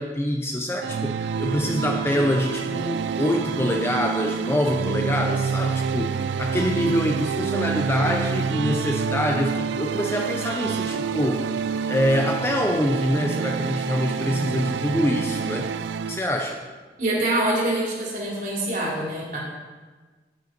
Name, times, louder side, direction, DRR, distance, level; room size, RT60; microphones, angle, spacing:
voice 1, 0.0-11.4 11.9-15.7 16.1-16.6, equal, 15° left, 3 dB, 0.5 m, -25 dB
sound 1, 0.8-16.2, right 6 dB, 80° right, 0.3 m, -27 dB
voice 2, 17.0-19.4, right 1 dB, 45° right, -4 dB, 3.0 m, -25 dB
9.7 x 9.3 x 4.0 m, 1.4 s
head